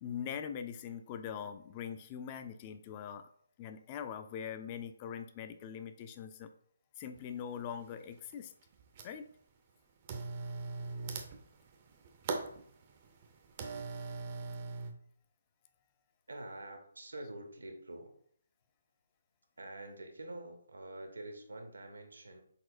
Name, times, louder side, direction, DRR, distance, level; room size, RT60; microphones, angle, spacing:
voice 1, 0.0-3.3 3.6-6.5 7.0-8.5 9.0-9.2, left 8 dB, 25° left, 9 dB, 0.3 m, -42 dB
sound 1, 7.1-7.2 7.8-8.3 8.6-9.3 10.0-14.9, right 4 dB, 35° right, 0.5 m, -41 dB
voice 2, 16.3-18.1 19.6-22.4, right 2 dB, 70° right, 5 dB, 0.8 m, -46 dB
4.1 x 4.1 x 2.5 m, 0.63 s
figure-of-eight pair, 140°, 0 cm